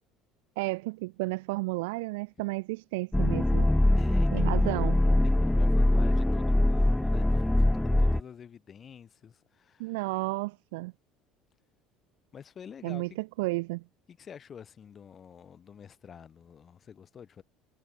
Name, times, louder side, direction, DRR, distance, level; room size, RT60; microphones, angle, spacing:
voice 1, 0.6-3.7 4.3-5.0 9.8-10.9 12.8-13.8, right 24 dB, 80° right, 0.3 m, -32 dB
sound 1, 3.1-8.2, left 1 dB, 5° left, 0.3 m, -23 dB
voice 2, 4.0-4.9 5.2-7.5 7.8-10.0 12.3-13.2 14.1-17.4, left 7 dB, 40° left, 5.9 m, -48 dB
supercardioid pair, 85°, 0 cm